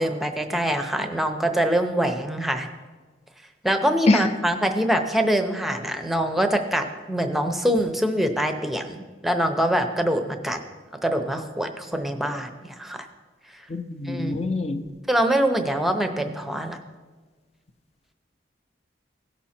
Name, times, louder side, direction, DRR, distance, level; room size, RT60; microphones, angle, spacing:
voice 1, 0.0-2.7 3.6-10.6 11.0-13.0 13.5-13.6 14.0-14.4 15.1-16.8, right 1 dB, ahead, 6 dB, 0.7 m, -24 dB
voice 2, 13.7-14.8, left 2 dB, 35° left, 8 dB, 0.6 m, -23 dB
16.5 x 6.1 x 4.4 m, 1.3 s
head